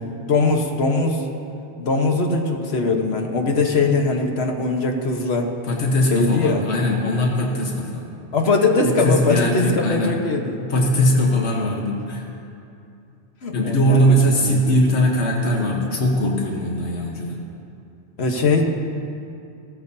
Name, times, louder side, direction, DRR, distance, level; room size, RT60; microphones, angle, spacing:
voice 1, 0.3-1.3 1.8-5.5 6.1-6.6 8.3-10.6 13.4-14.7 18.2-18.6, left 3 dB, 70° left, 2 dB, 1.4 m, -21 dB
voice 2, 5.6-8.1 8.8-10.2 10.6-12.3 13.5-17.4, equal, 85° left, 0 dB, 1.4 m, -20 dB
16.5 x 14.0 x 2.7 m, 2.6 s
omnidirectional pair, 1.1 m